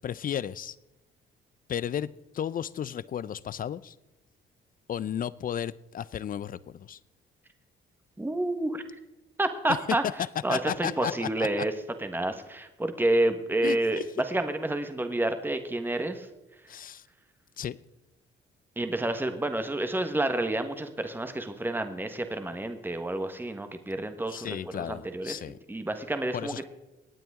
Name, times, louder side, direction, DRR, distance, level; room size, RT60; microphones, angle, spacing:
voice 1, 0.0-0.8 1.7-3.9 4.9-7.0 10.5-11.3 13.6-14.0 16.7-17.0 17.6-17.8 24.3-25.6 26.3-26.7, left 9 dB, 45° left, 0.5 m, -34 dB
voice 2, 8.2-8.8 9.4-10.0 10.4-11.7 12.0-16.3 18.8-25.4 25.7-26.6, right 1 dB, 10° right, 1.4 m, -29 dB
25.0 x 9.1 x 3.7 m
cardioid pair, 90°, 20 cm